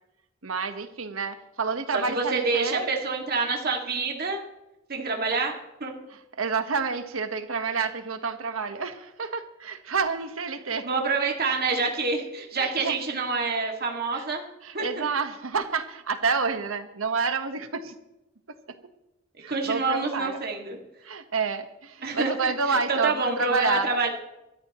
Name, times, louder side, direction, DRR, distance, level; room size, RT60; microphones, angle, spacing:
voice 1, 0.4-2.9 6.1-10.9 12.6-13.0 14.1-14.3 14.6-18.0 18.5-18.8 19.4-20.4 21.0-24.0, right 4 dB, 85° right, 8 dB, 1.3 m, -29 dB
voice 2, 2.1-4.4 4.9-5.5 5.8-5.9 10.8-14.4 14.7-15.1 19.5-20.8 22.0-22.3 22.9-24.1, right 4 dB, 50° right, 1 dB, 2.2 m, -27 dB
24.0 x 13.5 x 3.1 m, 0.93 s
head